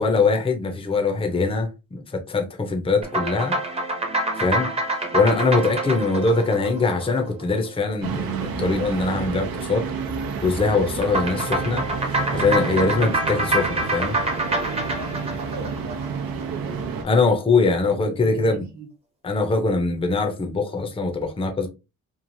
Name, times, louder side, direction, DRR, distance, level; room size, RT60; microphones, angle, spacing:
voice 1, 0.0-3.6 4.4-4.7 5.1-9.9 10.4-11.9 12.3-14.2 17.0-18.7 19.2-21.7, left 3 dB, 15° left, 0.5 m, -22 dB
sound 1, 3.0-7.7 11.0-16.4, right 2 dB, 20° right, 0.7 m, -26 dB
sound 2, 8.0-17.0, right 5 dB, 90° right, 0.7 m, -30 dB
voice 2, 12.2-13.1 14.3-16.2 17.8-18.9, right 4 dB, 55° right, 1.0 m, -38 dB
3.1 x 2.4 x 2.5 m
wide cardioid pair, 135°, 34 cm